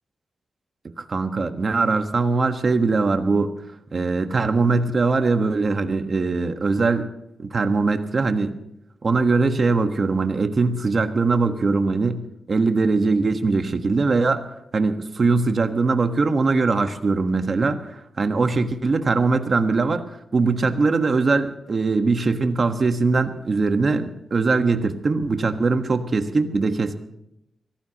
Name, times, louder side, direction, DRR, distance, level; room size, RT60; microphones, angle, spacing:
voice 1, 1.0-3.5 3.9-7.1 7.4-8.6 9.0-12.2 12.5-14.5 14.7-20.0 20.3-27.0, right 3 dB, 35° right, 6 dB, 1.4 m, -21 dB
25.0 x 17.5 x 3.0 m, 0.83 s
wide cardioid pair, 160°, 0 cm